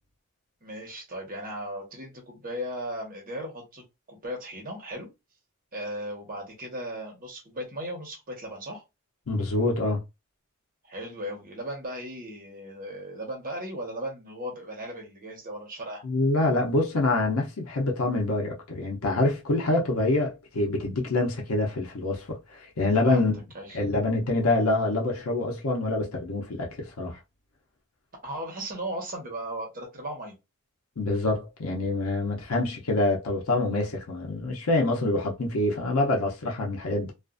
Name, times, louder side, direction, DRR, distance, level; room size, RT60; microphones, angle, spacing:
voice 1, 0.6-5.1 5.7-8.8 10.8-16.0 23.0-23.3 23.5-23.8 28.2-30.3, right 1 dB, 45° right, 1.1 m, -37 dB
voice 2, 9.3-10.0 16.0-23.4 23.7-27.2 31.0-37.1, left 2 dB, 85° left, 0.7 m, -26 dB
2.5 x 2.4 x 2.5 m
head